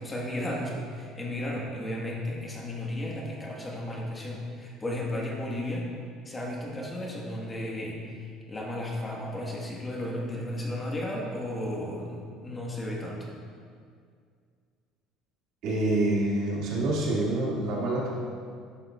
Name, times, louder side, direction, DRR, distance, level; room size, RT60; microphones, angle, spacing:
voice 1, 0.0-5.9 6.2-13.3, left 1 dB, 20° left, -2 dB, 1.4 m, -34 dB
voice 2, 15.6-18.1, right 2 dB, 65° right, -5 dB, 2.1 m, -27 dB
11.5 x 7.2 x 2.4 m, 2.2 s
cardioid pair, 115°, 0 cm